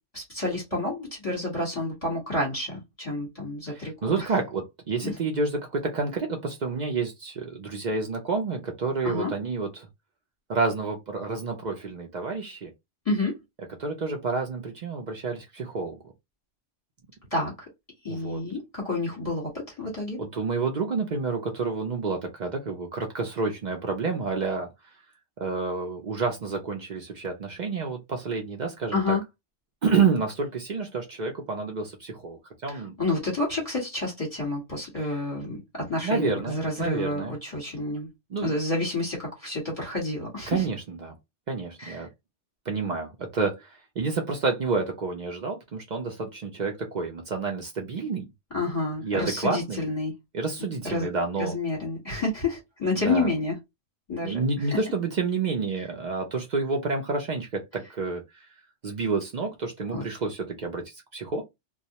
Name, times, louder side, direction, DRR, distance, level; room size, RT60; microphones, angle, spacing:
voice 1, 0.1-4.3 5.0-5.1 9.0-9.3 13.0-13.3 17.3-17.5 18.0-20.2 28.9-29.2 32.7-38.1 38.4-40.6 41.8-42.0 48.5-50.1 50.8-51.1 51.4-53.5 54.1-54.4 59.9-60.0, left 2 dB, 30° left, 1.1 m, -29 dB
voice 2, 3.7-9.9 10.5-12.7 13.8-16.0 18.1-18.4 20.2-24.7 25.4-29.2 29.8-32.9 35.0-35.2 36.0-37.3 38.3-38.5 40.5-41.2 41.5-42.1 42.7-48.3 49.0-49.9 50.3-51.6 53.0-53.3 54.2-58.5 58.8-61.4, right 4 dB, 50° right, 0.5 m, -29 dB
2.3 x 2.1 x 2.7 m
omnidirectional pair, 1.2 m